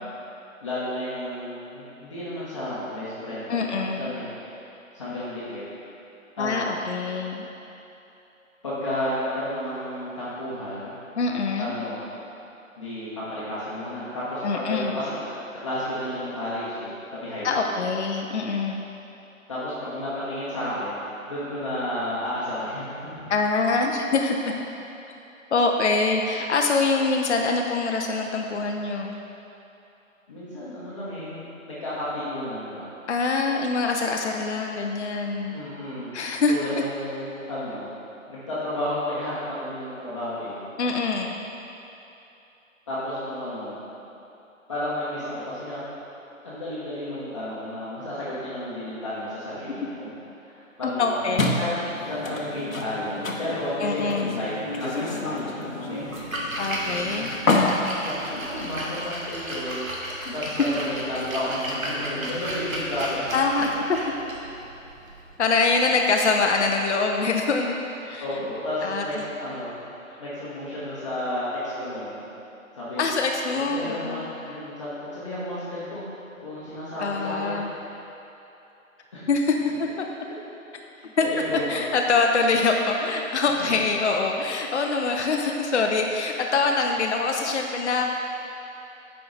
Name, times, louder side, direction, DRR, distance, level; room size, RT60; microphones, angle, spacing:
voice 1, 0.6-4.6 4.9-5.6 6.4-6.8 8.6-11.0 11.6-12.1 12.8-16.9 17.2-17.8 19.5-23.3 30.3-32.9 35.5-36.2 36.5-37.9 38.3-40.6 42.9-43.8 44.7-45.8 46.4-50.1 50.4-51.7 52.0-56.1 58.0-59.8 60.3-63.4 68.2-69.8 70.2-72.3 72.8-73.0 73.7-77.7 79.1-79.3 80.2-80.4 80.9-81.8, left 1 dB, 20° left, -11 dB, 0.9 m, -32 dB
voice 2, 3.5-4.1 6.4-7.5 11.2-11.8 14.4-15.0 17.4-18.8 23.3-24.5 25.5-29.1 33.1-35.5 36.1-36.5 40.8-41.4 51.0-51.4 53.8-54.3 56.6-57.3 60.3-60.4 63.3-63.7 65.4-68.2 68.8-69.2 73.0-74.2 77.0-77.7 79.3-80.1 81.2-81.3 81.7-88.1, left 4 dB, 55° left, 2 dB, 0.6 m, -24 dB
sound 1, 51.4-59.1, left 2 dB, 75° left, 1.0 m, -29 dB
sound 2, 51.8-57.4, left 2 dB, ahead, 0.7 m, -39 dB
Splash splatter, 56.0-65.9, right 1 dB, 75° right, 1.4 m, -34 dB
9.2 x 4.7 x 3.8 m, 2.9 s
figure-of-eight pair, 145°, 41 cm